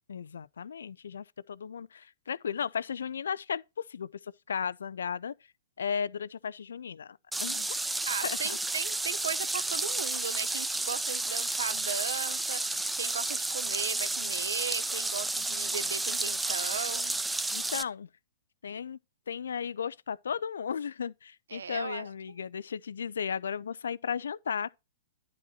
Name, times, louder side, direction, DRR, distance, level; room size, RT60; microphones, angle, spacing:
voice 1, 0.1-3.6 3.9-5.3 5.8-7.7 8.2-8.6 17.5-18.1 18.6-19.0 19.3-24.7, left 7 dB, 85° left, 0.5 m, -35 dB
sound 1, 7.3-17.8, right 2 dB, 5° right, 0.6 m, -32 dB
voice 2, 8.1-17.1 21.5-22.1, right 6 dB, 85° right, 0.8 m, -36 dB
11.0 x 4.3 x 4.2 m
hypercardioid pair, 130°, 0 cm